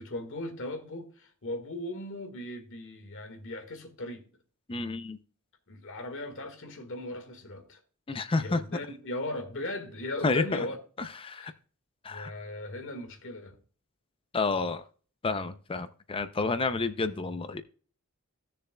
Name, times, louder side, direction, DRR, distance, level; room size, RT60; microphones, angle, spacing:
voice 1, 0.0-4.2 5.7-7.8 8.4-10.8 11.4-11.5 12.1-13.6, left 1 dB, 65° left, 1.7 m, -38 dB
voice 2, 4.7-5.2 8.1-8.6 10.2-10.6 11.0-11.5 12.0-12.3 14.3-14.8 15.2-17.6, left 3 dB, 25° left, 0.5 m, -30 dB
16.0 x 6.7 x 2.2 m
head